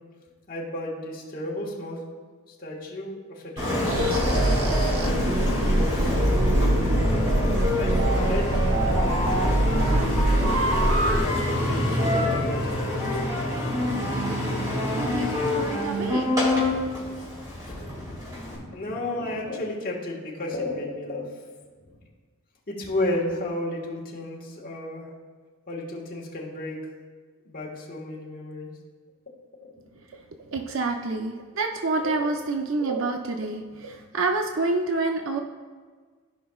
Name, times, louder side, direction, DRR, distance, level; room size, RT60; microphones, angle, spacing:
voice 1, 0.5-2.0 2.6-6.1 7.8-10.4 11.1-12.8 18.5-21.3 22.7-25.1 25.7-26.8 27.4-28.7 29.6-29.7 30.5-30.8 32.0-32.3, left 1 dB, 40° left, -4 dB, 1.5 m, -33 dB
Engine, 3.6-18.6, left 1 dB, 15° right, 2.4 m, -27 dB
sound 1, 3.9-11.2, right 1 dB, 75° right, 0.9 m, -23 dB
voice 2, 14.9-16.4 30.5-35.4, right 3 dB, 60° right, 4 dB, 0.5 m, -28 dB
14.5 x 5.3 x 2.3 m, 1.5 s
head